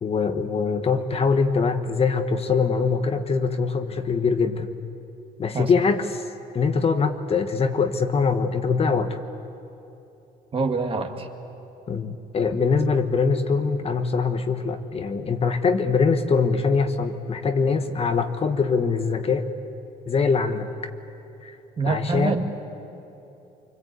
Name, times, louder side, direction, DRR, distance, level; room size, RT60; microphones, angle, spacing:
voice 1, 0.0-4.7 5.4-6.2 6.5-9.2 11.9-19.5 20.1-20.7 21.4-21.6 21.9-22.3, left 5 dB, 35° left, 7 dB, 1.3 m, -23 dB
voice 2, 10.5-11.3 21.8-22.4, right 4 dB, 35° right, 4 dB, 2.1 m, -25 dB
25.0 x 24.5 x 8.3 m, 2.9 s
cardioid pair, 110°, 17 cm